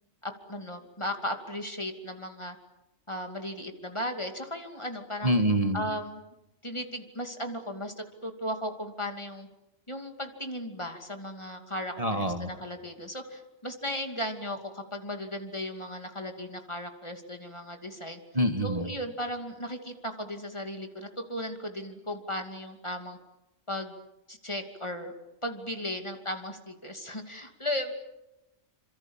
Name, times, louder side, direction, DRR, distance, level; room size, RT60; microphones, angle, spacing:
voice 1, 0.2-2.6 3.1-5.3 5.7-6.2 6.6-9.5 9.9-18.2 18.6-23.2 23.7-24.0 24.3-25.1 25.4-27.9, left 1 dB, 25° left, 5 dB, 2.7 m, -36 dB
voice 2, 5.2-5.8 12.0-12.5 18.3-18.9, right 1 dB, 30° right, 6 dB, 1.8 m, -26 dB
28.0 x 26.0 x 7.4 m, 0.92 s
omnidirectional pair, 1.2 m